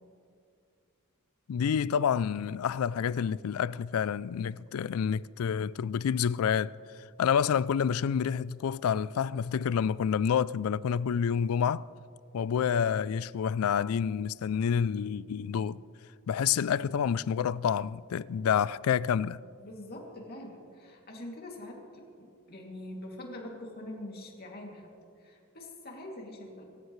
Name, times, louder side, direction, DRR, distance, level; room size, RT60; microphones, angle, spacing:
voice 1, 1.5-6.7 7.2-11.9 12.3-15.8 16.3-19.4, left 7 dB, 80° left, 0.4 m, -28 dB
voice 2, 19.6-24.9 25.2-26.6, left 1 dB, 45° left, 2.5 m, -44 dB
24.0 x 14.5 x 3.2 m
head